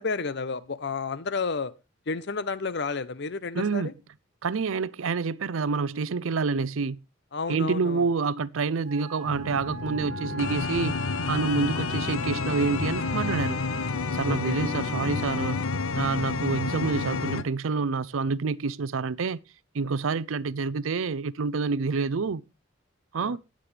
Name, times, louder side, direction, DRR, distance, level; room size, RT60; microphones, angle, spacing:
voice 1, 0.0-1.7 2.1-3.9 7.3-8.0 14.3-14.6 23.2-23.4, left 4 dB, 55° left, 0.7 m, -31 dB
voice 2, 3.5-3.9 4.4-7.0 7.5-10.9 11.3-13.6 14.1-15.6 16.0-19.4 19.7-22.4 23.1-23.4, right 4 dB, 75° right, 0.5 m, -27 dB
Wind instrument woodwind instrument, 8.8-14.0, right 3 dB, 40° right, 6.1 m, -40 dB
sound 1, 9.2-17.4, left 4 dB, 90° left, 0.8 m, -30 dB
19.0 x 7.5 x 3.3 m
head